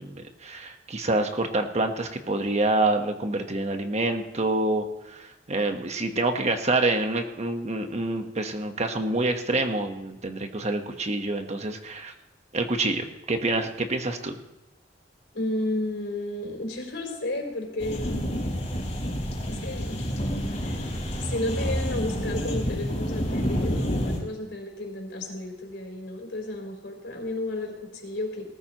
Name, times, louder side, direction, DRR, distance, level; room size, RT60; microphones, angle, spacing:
voice 1, 0.0-12.1 12.5-14.4, right 2 dB, 40° right, 6 dB, 1.2 m, -27 dB
voice 2, 15.3-18.3 19.5-20.2 20.6-20.8 21.2-28.4, left 1 dB, 75° left, 1 dB, 4.1 m, -32 dB
sound 1, 17.8-24.2, equal, 40° left, 4.5 m, -29 dB
19.5 x 13.5 x 3.0 m, 0.97 s
head